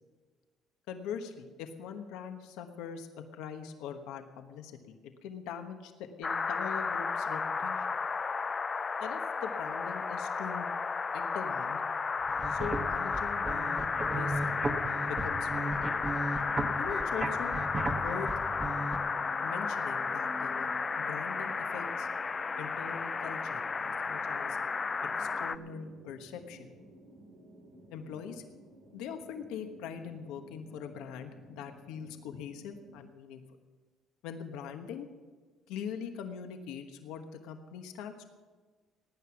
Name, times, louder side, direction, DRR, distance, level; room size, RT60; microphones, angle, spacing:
voice 1, 0.9-3.1 3.3-7.9 9.0-10.7 11.1-11.8 12.5-13.8 14.1-14.4 15.0-15.9 16.6-17.5 17.9-18.3 19.4-20.7 21.0-22.1 22.6-24.6 25.2-26.7 27.9-28.4 28.9-33.4 34.2-35.1 35.7-38.2, left 7 dB, 85° left, 6 dB, 1.1 m, -42 dB
sound 1, 6.2-25.6, left 5 dB, 25° left, 0.4 m, -33 dB
sound 2, 12.2-19.0, right 2 dB, 20° right, 1.1 m, -36 dB
sound 3, 13.7-33.1, right 2 dB, 65° right, 3.3 m, -52 dB
17.5 x 9.5 x 5.9 m, 1.4 s
cardioid pair, 120°, 0 cm